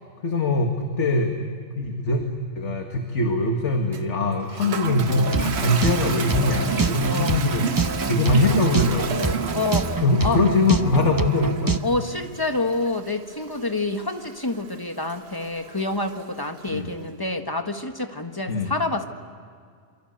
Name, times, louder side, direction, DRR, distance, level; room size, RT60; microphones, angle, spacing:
voice 1, 0.2-2.3 2.6-9.5 10.0-11.8 16.7-16.9 18.5-18.7, left 2 dB, 70° left, 3 dB, 2.2 m, -23 dB
Toilet flush, 3.9-16.7, right 7 dB, 60° right, 1.3 m, -33 dB
sound 1, 5.0-11.8, right 3 dB, 20° right, 0.6 m, -26 dB
voice 2, 9.5-10.4 11.8-19.0, left 2 dB, 20° left, 5 dB, 1.5 m, -27 dB
28.0 x 24.0 x 8.1 m, 2.1 s
omnidirectional pair, 1.3 m